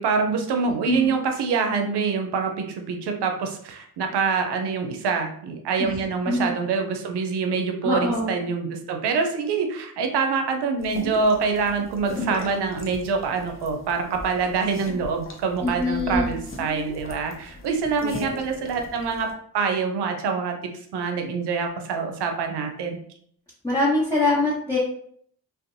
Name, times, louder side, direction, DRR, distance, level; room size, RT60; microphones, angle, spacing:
voice 1, 0.0-19.3 19.5-23.0, right 5 dB, 85° right, 4 dB, 0.5 m, -25 dB
voice 2, 7.8-8.3 15.6-16.3 18.0-18.3 23.6-24.8, left 2 dB, 10° left, -9 dB, 1.1 m, -24 dB
sound 1, 10.8-19.3, left 1 dB, 35° left, 0.6 m, -38 dB
2.6 x 2.1 x 2.5 m, 0.63 s
cardioid pair, 50°, 40 cm